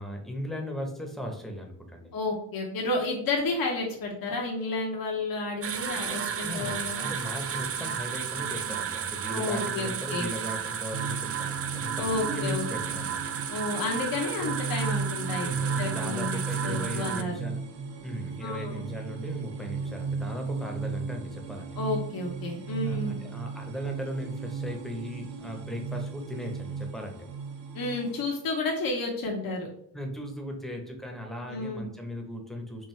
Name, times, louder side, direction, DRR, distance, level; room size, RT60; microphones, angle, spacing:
voice 1, 0.0-2.1 6.4-13.3 15.4-17.6 18.0-21.7 22.8-27.3 29.9-32.9, equal, ahead, 2 dB, 1.0 m, -37 dB
voice 2, 2.1-7.1 9.3-10.3 12.0-12.6 13.5-15.5 15.8-17.3 18.4-18.8 21.8-23.1 27.7-29.7 31.5-31.8, left 2 dB, 50° left, -1 dB, 1.0 m, -31 dB
sound 1, 5.6-17.2, right 8 dB, 35° right, 0.4 m, -33 dB
sound 2, 10.9-28.2, right 5 dB, 85° right, 0.8 m, -35 dB
4.6 x 2.6 x 3.3 m, 0.69 s
cardioid pair, 70°, 43 cm